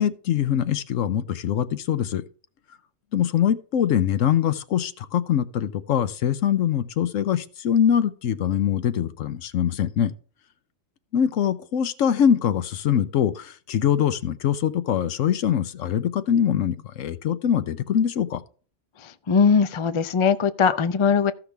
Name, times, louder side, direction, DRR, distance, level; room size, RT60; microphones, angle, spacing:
voice 1, 0.0-2.2 3.1-10.1 11.1-18.4, left 9 dB, 75° left, 1.1 m, -23 dB
voice 2, 19.0-21.3, left 6 dB, 45° left, 0.4 m, -20 dB
15.0 x 5.9 x 3.4 m
omnidirectional pair, 1.4 m